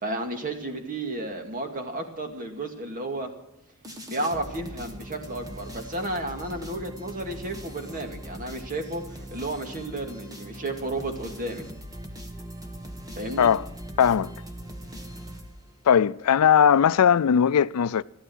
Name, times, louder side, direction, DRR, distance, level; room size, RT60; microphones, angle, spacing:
voice 1, 0.0-3.3 4.1-11.7 13.2-13.5, right 2 dB, 40° right, 2.1 m, -32 dB
sound 1, 3.8-16.0, equal, 15° right, 1.6 m, -41 dB
voice 2, 14.0-14.3 15.9-18.0, left 8 dB, 80° left, 0.4 m, -19 dB
14.0 x 12.5 x 6.2 m
head